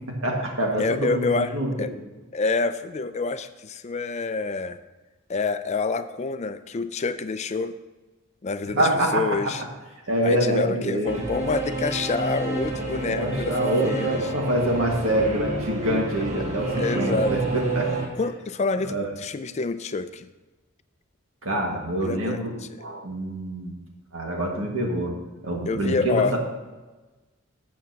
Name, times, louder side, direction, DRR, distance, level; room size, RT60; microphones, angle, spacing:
voice 1, 0.2-1.7 8.8-9.2 10.1-11.1 13.1-18.0 18.8-19.1 21.4-22.5 22.8-23.7 24.1-25.1 25.4-26.4, right 1 dB, 80° right, 0 dB, 1.9 m, -25 dB
voice 2, 0.7-1.9 2.3-4.8 5.3-7.7 8.4-9.6 10.2-14.3 16.8-17.4 18.2-20.3 22.0-22.7 25.7-26.4, left 4 dB, 35° left, 12 dB, 0.4 m, -27 dB
Singing / Musical instrument, 11.0-18.1, right 2 dB, 35° right, 1.4 m, -29 dB
12.5 x 7.5 x 2.9 m, 1.2 s
head